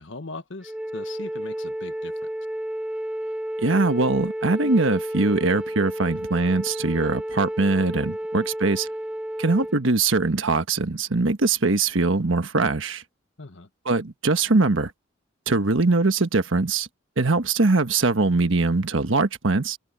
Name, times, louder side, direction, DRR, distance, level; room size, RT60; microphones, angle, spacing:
voice 1, 0.0-2.1 13.4-13.7, left 2 dB, 70° left, 1.4 m, -39 dB
Wind instrument woodwind instrument, 0.6-9.8, right 1 dB, 5° right, 0.6 m, -31 dB
voice 2, 3.6-8.9 9.4-13.0 13.8-14.9 15.5-16.9 17.2-19.8, right 3 dB, 75° right, 1.3 m, -22 dB
head